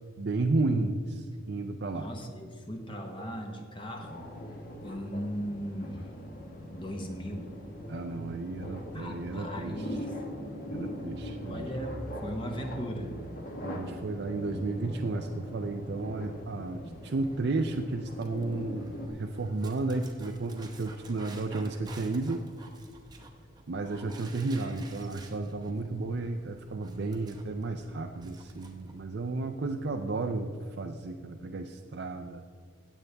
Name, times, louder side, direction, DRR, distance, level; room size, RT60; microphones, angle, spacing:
voice 1, 0.2-2.1 7.9-9.7 10.7-11.7 13.6-22.4 23.7-32.4, right 3 dB, 55° right, 4 dB, 0.5 m, -33 dB
voice 2, 1.9-4.3 4.8-6.1 6.7-7.5 8.9-10.0 11.4-13.1 16.8-17.0, equal, 25° left, 3 dB, 1.0 m, -38 dB
sound 1, 4.0-19.1, left 1 dB, 45° left, 1.4 m, -41 dB
Dog, 16.9-29.0, right 2 dB, 20° right, 0.9 m, -52 dB
16.5 x 8.2 x 3.4 m, 2.1 s
head